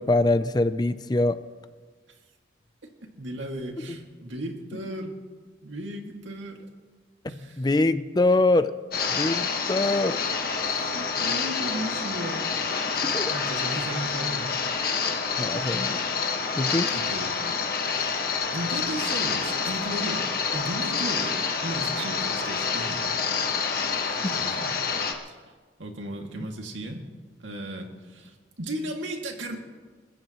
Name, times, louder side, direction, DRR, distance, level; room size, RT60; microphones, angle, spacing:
voice 1, 0.0-1.4 7.6-8.7 9.1-10.2 13.0-13.4 15.4-16.0 16.6-16.9 24.0-24.3, left 2 dB, 20° left, 12 dB, 0.4 m, -24 dB
voice 2, 3.2-5.1 5.6-6.7 7.3-7.6 10.7-12.5 13.0-14.5 16.9-17.6 17.9-20.3 20.5-23.1 24.1-24.8 25.3-25.4 25.8-27.0 27.4-29.6, right 1 dB, 85° right, 2 dB, 2.2 m, -35 dB
sound 1, 8.9-25.1, left 5 dB, 50° left, 1.5 m, -28 dB
29.0 x 15.5 x 3.1 m, 1.4 s
head